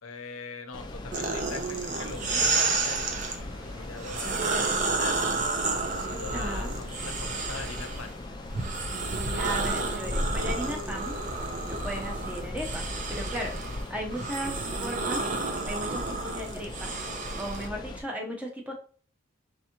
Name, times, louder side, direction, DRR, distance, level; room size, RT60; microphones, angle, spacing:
voice 1, 0.0-5.2 5.8-8.2, left 4 dB, 90° left, 8 dB, 0.7 m, -42 dB
sound 1, 0.7-18.0, left 1 dB, 20° left, 0.4 m, -37 dB
sound 2, 1.1-3.4 4.0-8.1 8.5-17.7, right 3 dB, 40° right, 0.6 m, -31 dB
sound 3, 1.7-12.9, equal, 80° right, 1.6 m, -50 dB
voice 2, 6.3-6.7 9.4-11.1 11.7-13.5 13.9-15.4 15.7-16.9 17.4-18.7, right 1 dB, 5° right, 0 dB, 0.8 m, -36 dB
4.2 x 3.4 x 2.9 m, 0.42 s
head